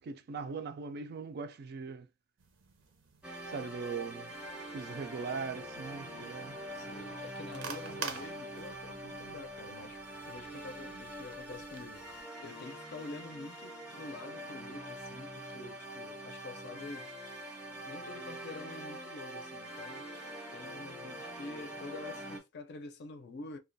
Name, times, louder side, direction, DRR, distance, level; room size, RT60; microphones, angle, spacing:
voice 1, 0.0-2.1 3.5-4.3 4.7-6.6, right 5 dB, 55° right, 0.3 m, -40 dB
sound 1, 2.4-12.2, right 5 dB, 90° right, 0.6 m, -49 dB
sound 2, 3.2-22.4, right 1 dB, 5° right, 0.6 m, -44 dB
voice 2, 6.7-12.1 12.4-17.2 17.9-20.1 20.5-23.6, left 3 dB, 55° left, 0.5 m, -47 dB
2.3 x 2.2 x 2.5 m
head